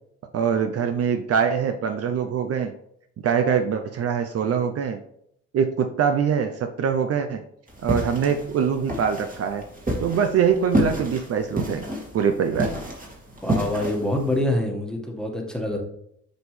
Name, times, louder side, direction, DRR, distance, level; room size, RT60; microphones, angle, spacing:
voice 1, 0.3-2.7 3.2-5.0 5.5-7.4 7.8-9.6 10.0-11.8 12.1-12.8, right 7 dB, 50° right, 7 dB, 0.6 m, -23 dB
sound 1, 7.7-14.4, right 1 dB, 30° right, 2.2 m, -29 dB
voice 2, 13.4-15.8, left 1 dB, ahead, 0 dB, 1.6 m, -25 dB
7.7 x 5.3 x 3.3 m, 0.73 s
cardioid pair, 90°, 30 cm